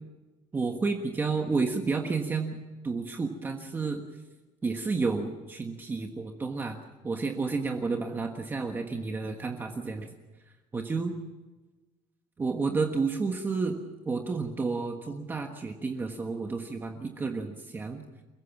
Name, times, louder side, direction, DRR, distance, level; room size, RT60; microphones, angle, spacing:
voice 1, 0.5-2.6 2.8-4.0 4.6-6.8 7.0-10.1 10.7-11.1 12.4-13.8 14.0-18.0, right 4 dB, 15° right, 4 dB, 1.4 m, -31 dB
28.5 x 16.0 x 7.3 m, 1.2 s
cardioid pair, 165°, 12 cm